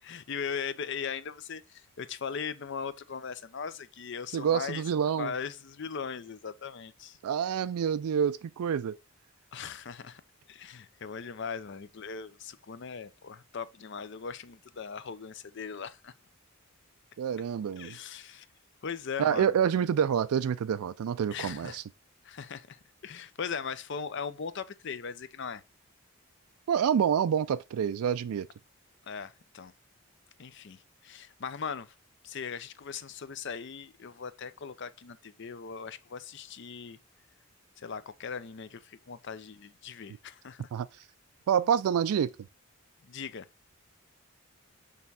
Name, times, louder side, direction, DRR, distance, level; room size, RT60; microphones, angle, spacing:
voice 1, 0.0-4.8 5.2-7.2 9.5-10.2 10.5-16.1 17.8-18.5 18.8-19.5 21.3-21.8 22.2-25.6 29.0-29.7 30.4-31.9 32.2-37.0 37.8-40.7 43.0-43.5, left 6 dB, 55° left, 0.5 m, -39 dB
voice 2, 4.3-5.3 7.2-9.0 17.2-18.0 19.2-21.8 26.7-28.5 40.7-40.9 41.5-42.3, right 8 dB, 85° right, 0.3 m, -27 dB
6.6 x 3.5 x 4.1 m
head